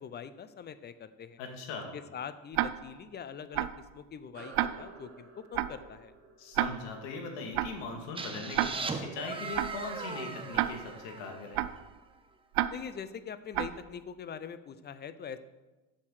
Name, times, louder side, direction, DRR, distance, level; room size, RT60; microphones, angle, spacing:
voice 1, 0.0-1.4 1.9-6.1 12.7-15.4, left 7 dB, 25° left, 13 dB, 0.5 m, -43 dB
voice 2, 1.4-1.9 6.4-11.6, left 3 dB, 80° left, 3 dB, 2.2 m, -40 dB
Tick-tock, 2.5-3.0 3.5-3.9 4.5-5.0 5.5-5.9 6.5-7.0 7.5-7.9 8.5-9.0 9.5-9.9 10.5-11.0 11.5-11.9 12.5-13.0 13.5-13.9, right 14 dB, 70° right, 0.5 m, -32 dB
sound 1, 4.3-9.2, right 4 dB, 35° right, 1.8 m, -54 dB
sound 2, 8.2-11.9, right 3 dB, 15° right, 0.8 m, -39 dB
7.3 x 6.6 x 6.4 m, 1.1 s
supercardioid pair, 110°, 38 cm